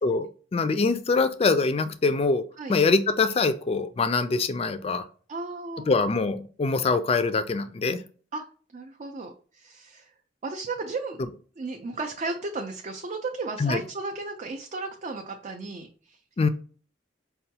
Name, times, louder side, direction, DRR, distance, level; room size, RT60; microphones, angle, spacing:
voice 1, 0.0-2.4 2.7-5.0 5.9-8.0 13.6-13.8 16.4-16.5, left 4 dB, 30° left, 11 dB, 0.4 m, -24 dB
voice 2, 5.3-6.1 8.3-8.5 8.7-10.1 10.4-11.2 11.6-16.2, right 3 dB, 40° right, 4 dB, 0.4 m, -34 dB
5.4 x 2.2 x 2.8 m, 0.41 s
head